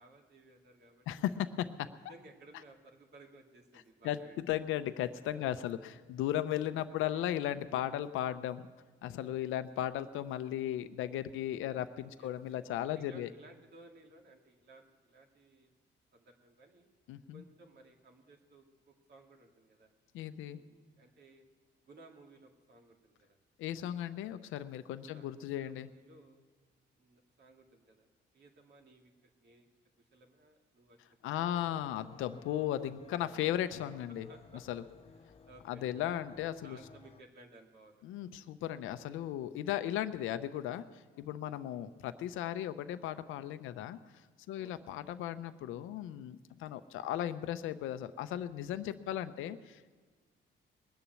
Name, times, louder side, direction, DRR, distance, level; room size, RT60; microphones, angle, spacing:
voice 1, 0.0-1.4 2.1-4.7 5.3-5.4 6.9-7.3 9.2-9.5 12.2-15.7 16.1-16.9 17.3-19.9 20.4-21.5 21.8-23.4 25.0-26.4 27.0-28.1 28.3-29.7 30.1-31.0 31.4-31.7 34.3-34.6 35.2-35.8 36.6-38.2 41.4-41.5 44.5-44.8 49.0-49.5, right 2 dB, 55° right, 3 dB, 2.3 m, -59 dB
voice 2, 1.1-1.9 4.0-8.7 9.0-13.3 17.1-17.4 20.1-20.6 23.6-25.9 31.2-34.3 34.7-34.8 35.7-36.8 38.0-49.9, left 12 dB, 90° left, 11 dB, 0.6 m, -36 dB
sound 1, 31.4-37.2, left 6 dB, 30° left, 0.6 m, -57 dB
20.5 x 7.0 x 9.4 m, 1.4 s
cardioid pair, 90°, 20 cm